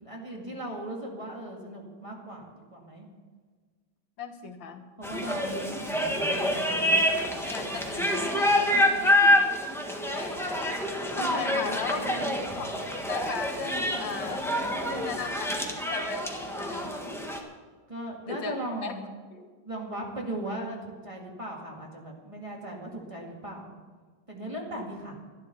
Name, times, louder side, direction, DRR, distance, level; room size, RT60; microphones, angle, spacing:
voice 1, 0.0-3.1 5.0-6.9 10.1-10.3 10.8-12.5 17.9-19.0 19.6-23.8 24.3-25.2, right 1 dB, 15° right, -1 dB, 2.1 m, -38 dB
voice 2, 4.2-4.9 7.4-9.5 10.1-10.4 11.2-12.1 12.6-14.5 14.8-17.0 18.2-18.5 18.8-18.9 19.3-19.5 24.8-24.9, left 6 dB, 85° left, 5 dB, 2.0 m, -37 dB
sound 1, 5.0-17.4, left 1 dB, ahead, 1.3 m, -27 dB
12.0 x 12.0 x 6.8 m, 1.5 s
omnidirectional pair, 2.0 m